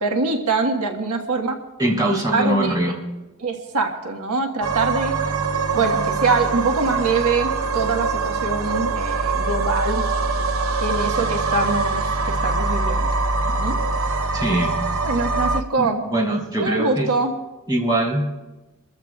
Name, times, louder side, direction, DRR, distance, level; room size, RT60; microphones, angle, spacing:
voice 1, 0.0-1.6 2.0-2.8 3.4-5.1 5.7-10.0 10.8-13.1 13.5-13.8 15.0-16.0 16.6-17.3, right 3 dB, 80° right, 2 dB, 1.4 m, -24 dB
voice 2, 1.8-2.9 14.3-14.7 15.8-17.1 17.7-18.3, right 1 dB, 20° right, -3 dB, 3.1 m, -22 dB
sound 1, 4.6-15.6, right 3 dB, 65° right, 0.8 m, -23 dB
29.0 x 14.5 x 2.4 m, 1.1 s
head